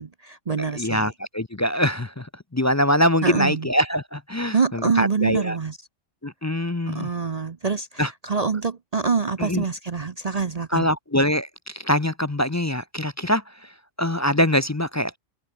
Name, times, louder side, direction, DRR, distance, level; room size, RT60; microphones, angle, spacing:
voice 1, 0.0-1.1 3.2-3.7 4.5-5.8 6.9-10.9, right 5 dB, 40° right, 0.7 m, -25 dB
voice 2, 0.8-2.3 2.5-5.6 6.2-7.1 8.0-8.1 9.5-9.6 10.7-11.5 11.8-13.4 14.0-15.2, equal, 20° left, 0.4 m, -23 dB
open air
omnidirectional pair, 1.3 m